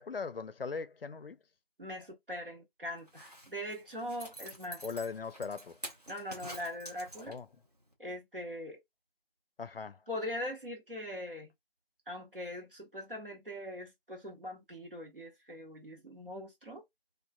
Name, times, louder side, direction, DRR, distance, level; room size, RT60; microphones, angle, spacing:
voice 1, 0.0-1.4 4.8-5.7 7.3-7.5 9.6-10.0, left 5 dB, 75° left, 0.5 m, -39 dB
voice 2, 1.8-4.9 6.1-7.4 8.0-8.8 10.1-11.5 12.1-16.8, left 1 dB, 65° right, 1.1 m, -41 dB
Zipper (clothing), 3.0-7.6 7.9-8.0, equal, 40° right, 0.8 m, -48 dB
2.4 x 2.2 x 2.3 m
figure-of-eight pair, 175°, 29 cm